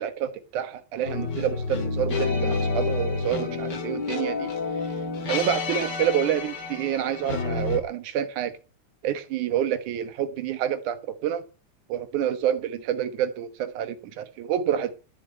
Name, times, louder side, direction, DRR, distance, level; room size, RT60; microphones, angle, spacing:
voice 1, 0.0-4.5 5.3-8.6 9.0-11.5 11.9-14.9, right 10 dB, 85° right, 2.7 m, -28 dB
sound 1, 1.1-7.8, left 4 dB, 40° left, 2.2 m, -29 dB
17.0 x 6.5 x 8.7 m
omnidirectional pair, 3.4 m